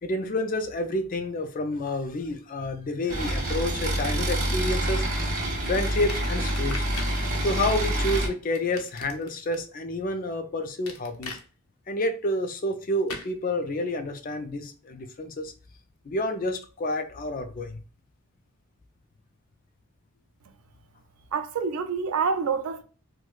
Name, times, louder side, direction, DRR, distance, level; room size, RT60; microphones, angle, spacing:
voice 1, 0.0-5.3 5.6-11.4 11.9-15.5 16.1-17.8, left 1 dB, 40° left, 0.4 m, -29 dB
sound 1, 3.1-8.3, right 1 dB, 40° right, 0.7 m, -27 dB
sound 2, 6.1-7.2 8.6-9.6 10.9-11.4 13.1-13.3, left 4 dB, 85° left, 0.6 m, -39 dB
voice 2, 21.3-22.8, right 5 dB, 90° right, 0.4 m, -27 dB
4.6 x 2.1 x 2.3 m
head